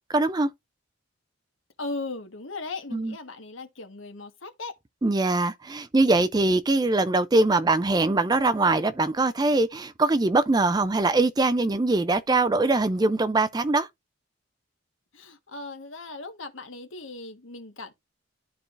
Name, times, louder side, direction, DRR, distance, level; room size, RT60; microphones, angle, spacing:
voice 1, 0.1-0.5 2.9-3.1 5.0-13.9, right 2 dB, 20° right, 0.4 m, -22 dB
voice 2, 1.8-4.7 15.1-17.9, left 3 dB, 75° left, 1.4 m, -37 dB
12.0 x 4.6 x 2.5 m
head